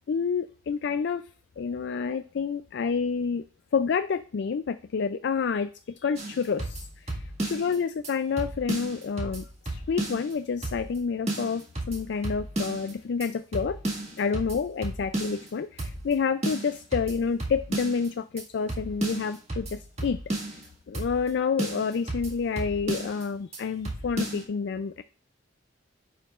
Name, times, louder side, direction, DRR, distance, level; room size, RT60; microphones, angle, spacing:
voice 1, 0.1-1.3 1.6-3.4 3.7-13.8 14.2-20.2 20.5-20.6 20.9-25.0, left 5 dB, 60° left, 10 dB, 0.4 m, -29 dB
sound 1, 6.2-7.8 8.0-8.1 8.4-10.3 10.6-11.0 11.3-12.9 13.2-13.3 13.5-15.5 15.8-16.1 16.4-18.1 18.4-18.5 18.7-20.7 20.9-21.3 21.6-23.2 23.5-23.6 23.8-24.4, right 1 dB, 35° right, 1.9 m, -33 dB
10.5 x 5.6 x 2.4 m, 0.41 s
head